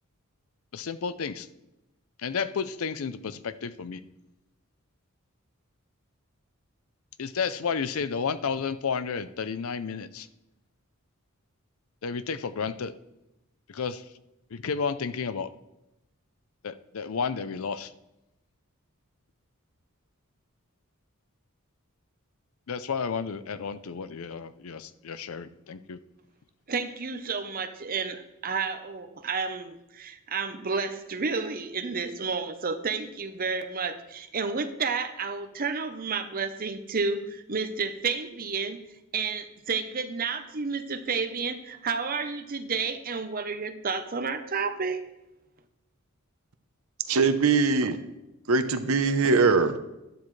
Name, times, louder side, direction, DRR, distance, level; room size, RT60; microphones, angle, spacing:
voice 1, 0.7-1.5 2.2-4.0 7.2-10.3 12.0-12.9 13.7-14.1 14.5-15.5 16.6-17.9 22.7-26.0, left 5 dB, 75° left, 13 dB, 0.5 m, -32 dB
voice 2, 26.7-38.8 39.1-45.0, right 5 dB, 40° right, 8 dB, 0.8 m, -31 dB
voice 3, 47.1-48.0 48.5-49.8, right 4 dB, 80° right, 10 dB, 0.8 m, -22 dB
12.0 x 11.5 x 3.2 m, 0.93 s
head